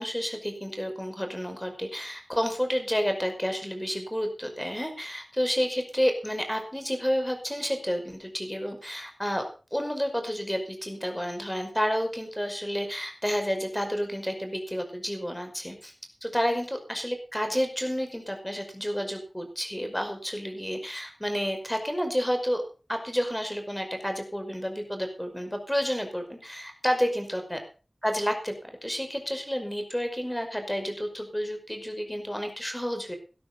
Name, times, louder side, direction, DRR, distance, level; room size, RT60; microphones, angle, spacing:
voice 1, 0.0-9.4 9.7-15.9 16.2-22.6 22.9-27.6 28.0-28.5 28.8-33.2, equal, 10° left, 5 dB, 5.5 m, -30 dB
18.0 x 12.0 x 3.9 m, 0.35 s
wide cardioid pair, 50°, 0 cm